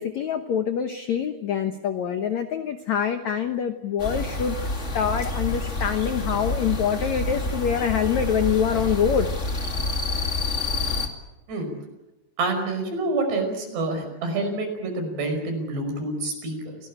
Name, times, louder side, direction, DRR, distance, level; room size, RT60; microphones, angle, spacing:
voice 1, 0.0-4.6 4.9-9.3, left 8 dB, 90° left, 8 dB, 1.5 m, -25 dB
sound 1, 4.0-11.1, left 2 dB, 30° left, 1.3 m, -28 dB
voice 2, 12.4-16.8, right 2 dB, 70° right, 4 dB, 7.4 m, -27 dB
29.0 x 18.0 x 8.8 m, 1.0 s
omnidirectional pair, 5.1 m